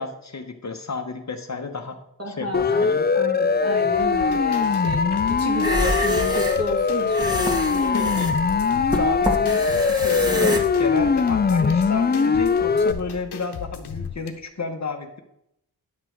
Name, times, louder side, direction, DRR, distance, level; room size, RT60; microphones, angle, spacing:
voice 1, 0.0-2.0 2.3-3.0 7.9-8.3 9.0-15.2, left 4 dB, 45° left, 5 dB, 1.0 m, -31 dB
voice 2, 2.2-8.3, equal, 40° right, -1 dB, 2.7 m, -32 dB
Siren, 2.5-12.9, left 5 dB, 25° left, 0.5 m, -21 dB
sound 1, 4.0-14.3, left 6 dB, 80° left, 1.0 m, -37 dB
sound 2, 5.5-10.6, equal, 10° right, 1.7 m, -28 dB
10.5 x 5.9 x 4.5 m, 0.79 s
cardioid pair, 50°, 39 cm